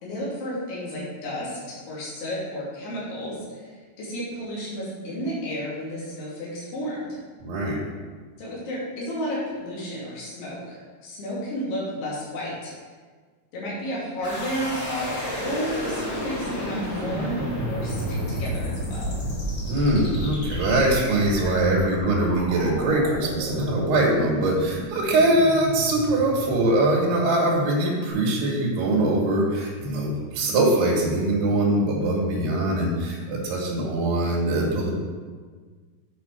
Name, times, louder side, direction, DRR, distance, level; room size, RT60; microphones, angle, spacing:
voice 1, 0.0-7.2 8.4-12.7 13.5-15.1 15.4-19.2, equal, 80° left, -7 dB, 4.5 m, -32 dB
voice 2, 7.4-7.8 19.7-34.9, right 1 dB, 80° right, -3 dB, 3.7 m, -22 dB
sound 1, 14.2-27.2, equal, 65° left, 0.8 m, -31 dB
9.9 x 4.8 x 4.6 m, 1.5 s
omnidirectional pair, 4.6 m